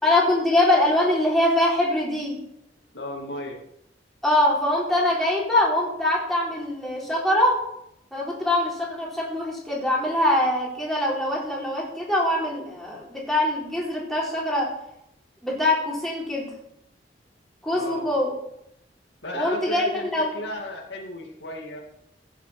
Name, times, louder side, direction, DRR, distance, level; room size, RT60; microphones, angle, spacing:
voice 1, 0.0-2.4 4.2-7.6 8.1-14.7 15.4-16.5 17.6-18.3 19.3-20.3, left 1 dB, ahead, -4 dB, 4.2 m, -23 dB
voice 2, 2.9-3.6 17.7-18.0 19.2-21.8, left 1 dB, 70° left, 1 dB, 2.3 m, -34 dB
15.5 x 8.1 x 5.9 m, 0.77 s
head